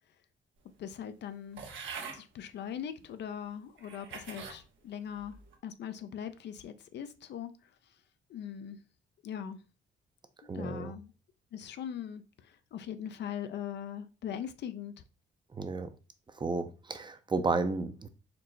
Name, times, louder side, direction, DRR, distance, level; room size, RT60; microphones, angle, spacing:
voice 1, 0.8-1.6 2.1-5.4 5.6-7.7 8.3-8.8 9.2-9.6 10.4-11.1 11.5-15.0, left 9 dB, 60° left, 0.5 m, -40 dB
sound 1, 1.6-2.2 3.0-3.1 3.8-4.6 5.2-5.6, right 5 dB, 70° right, 1.0 m, -43 dB
voice 2, 10.5-10.9 15.5-15.9 16.3-18.1, right 3 dB, 25° right, 0.5 m, -32 dB
4.4 x 2.0 x 3.8 m
cardioid pair, 90°, 20 cm